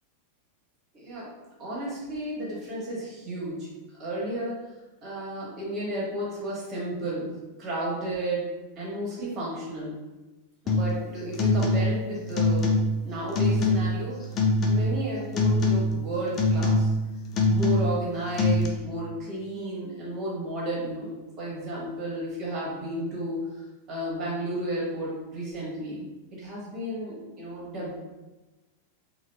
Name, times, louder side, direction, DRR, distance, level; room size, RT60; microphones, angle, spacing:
voice 1, 0.9-1.3 1.6-3.7 4.0-4.7 5.0-8.5 8.8-10.0 10.6-12.7 13.0-14.4 14.7-16.9 17.5-21.1 21.4-23.4 23.9-27.9, right 1 dB, 30° right, -6 dB, 1.4 m, -33 dB
sound 1, 10.7-11.0 11.3-12.0 12.3-13.0 13.4-14.0 14.4-15.1 15.4-16.0 16.4-17.0 17.3-18.0 18.4-18.7, left 2 dB, 30° left, 0.5 m, -23 dB
3.9 x 2.3 x 2.3 m, 1.1 s
figure-of-eight pair, 90°, 0 cm